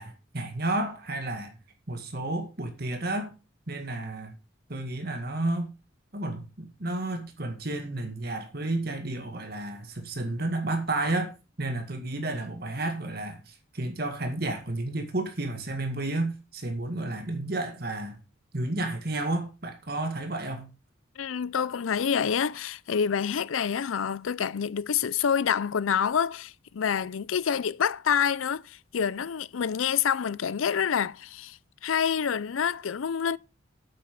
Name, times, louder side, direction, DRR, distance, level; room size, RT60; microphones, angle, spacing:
voice 1, 0.0-1.5 1.9-3.3 3.7-4.3 4.7-5.7 6.1-18.2 18.5-20.7, right 2 dB, 50° right, 1.9 m, -31 dB
voice 2, 21.2-33.4, left 7 dB, 85° left, 0.5 m, -27 dB
8.9 x 7.7 x 5.3 m
head